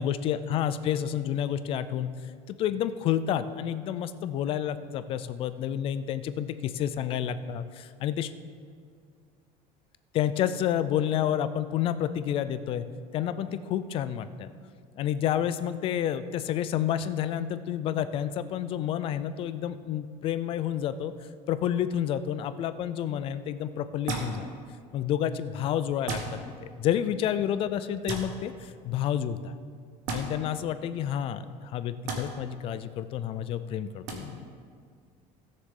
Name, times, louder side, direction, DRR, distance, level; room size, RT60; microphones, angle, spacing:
voice 1, 0.0-2.1 2.6-8.3 10.1-12.8 13.1-14.5 15.0-21.1 21.5-24.5 24.9-26.2 26.6-29.5 30.1-34.4, left 10 dB, 35° left, 12 dB, 0.4 m, -29 dB
sound 1, 24.1-24.3 26.1-26.3 28.1-28.2 30.1-30.2 32.1-32.2 34.1-34.2, right 4 dB, 55° right, 1.6 m, -31 dB
17.5 x 6.5 x 3.7 m, 2.1 s
cardioid pair, 175°, 15 cm